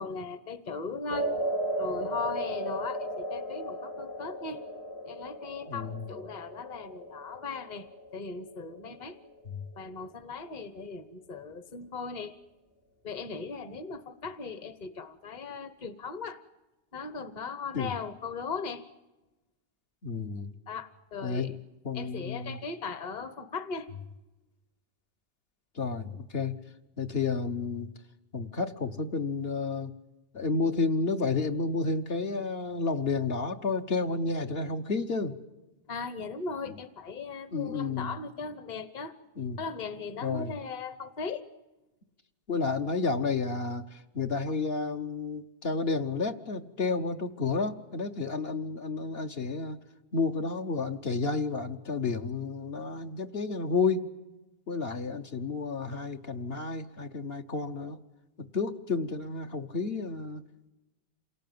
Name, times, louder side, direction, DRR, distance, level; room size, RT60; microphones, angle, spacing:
voice 1, 0.0-1.3 1.8-4.6 5.0-7.9 8.1-9.2 9.8-12.4 13.0-16.4 16.9-18.9 20.7-21.5 21.9-23.9 35.9-39.1 39.6-41.5 54.9-55.0, left 4 dB, 45° left, 12 dB, 1.2 m, -38 dB
sound 1, 1.1-9.4, right 1 dB, 85° left, 2.2 m, -36 dB
voice 2, 5.7-6.1 9.5-9.6 17.7-17.9 20.0-20.5 21.2-21.5 21.8-22.6 25.7-26.6 27.0-27.9 28.3-29.9 30.3-35.3 36.7-36.8 37.5-38.2 39.4-39.6 40.2-40.5 42.5-49.8 50.1-54.1 54.7-58.0 58.4-60.4, left 4 dB, 65° left, 4 dB, 1.4 m, -31 dB
28.0 x 18.5 x 9.4 m, 1.0 s
omnidirectional pair, 1.1 m